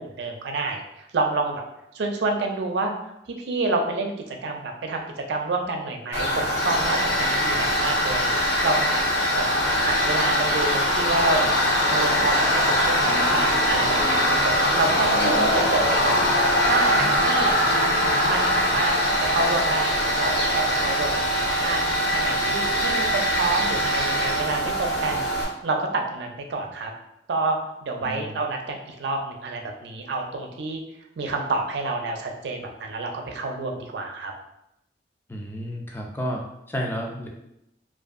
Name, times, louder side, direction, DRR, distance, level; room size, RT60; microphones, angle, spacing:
voice 1, 0.0-1.6 1.9-2.9 3.3-5.0 5.3-8.3 8.6-9.0 9.3-9.4 9.8-11.5 11.9-16.2 16.6-17.5 18.3-25.3 25.6-26.9 27.3-30.8 31.2-34.3, right 3 dB, 70° right, 3 dB, 0.4 m, -28 dB
Tools, 6.1-25.4, equal, 75° left, 0.6 m, -22 dB
voice 2, 28.0-28.3 35.3-36.4 36.7-37.3, equal, 10° left, 0 dB, 0.3 m, -31 dB
2.6 x 2.4 x 2.4 m, 0.83 s
head